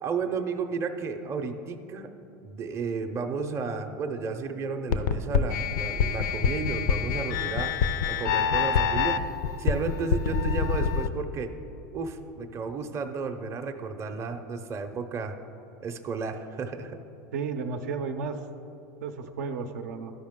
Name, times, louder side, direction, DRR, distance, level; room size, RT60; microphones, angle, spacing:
voice 1, 0.0-2.1 2.4-7.7 8.1-9.2 9.6-11.5 11.9-15.4 15.8-17.0, right 5 dB, 30° right, 5 dB, 0.6 m, -33 dB
sound 1, 4.9-11.1, left 6 dB, 75° left, 0.5 m, -26 dB
voice 2, 17.3-18.4 19.0-20.1, right 5 dB, 80° right, 6 dB, 0.6 m, -33 dB
12.5 x 5.1 x 3.6 m, 2.9 s
supercardioid pair, 115°, 9 cm